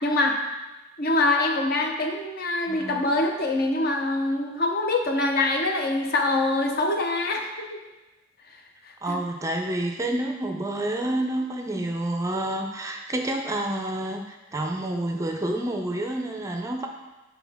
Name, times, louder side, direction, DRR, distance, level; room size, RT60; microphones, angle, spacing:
voice 1, 0.0-0.4 1.0-7.8 9.1-9.2, left 2 dB, 50° left, 3 dB, 0.8 m, -24 dB
voice 2, 2.7-3.1 9.0-16.9, right 1 dB, 15° right, 3 dB, 0.5 m, -29 dB
8.4 x 4.4 x 3.4 m, 1.1 s
head